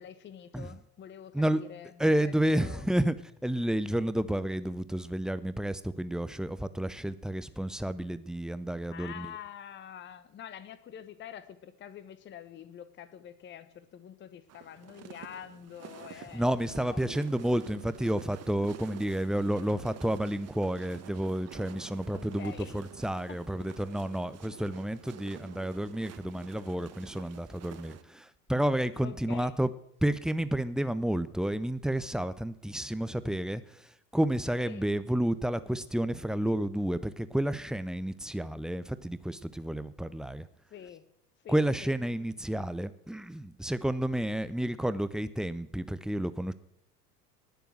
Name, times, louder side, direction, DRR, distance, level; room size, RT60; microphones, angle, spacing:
voice 1, 0.0-2.9 8.9-17.0 22.1-22.8 23.3-23.4 29.0-29.5 34.6-34.9 40.7-41.0 41.4-42.0, left 9 dB, 25° left, 13 dB, 1.0 m, -46 dB
voice 2, 2.0-3.1 3.4-9.3 16.3-29.7 30.0-33.6 34.1-40.4 41.5-46.5, right 1 dB, ahead, 14 dB, 0.6 m, -30 dB
sound 1, 14.5-28.0, right 9 dB, 30° right, 1.4 m, -49 dB
19.0 x 7.0 x 7.6 m, 0.76 s
figure-of-eight pair, 75°, 48 cm